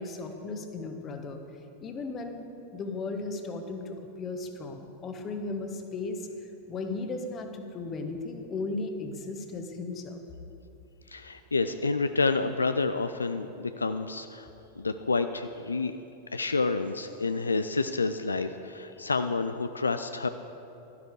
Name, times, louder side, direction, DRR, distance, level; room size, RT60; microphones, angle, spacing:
voice 1, 0.0-1.4 1.8-2.5 2.7-10.2, left 3 dB, 25° left, 5 dB, 1.2 m, -36 dB
voice 2, 11.1-14.5 14.8-16.0 16.3-20.3, left 3 dB, 75° left, 9 dB, 0.4 m, -29 dB
12.5 x 11.0 x 4.7 m, 2.9 s
figure-of-eight pair, 90°, 0 cm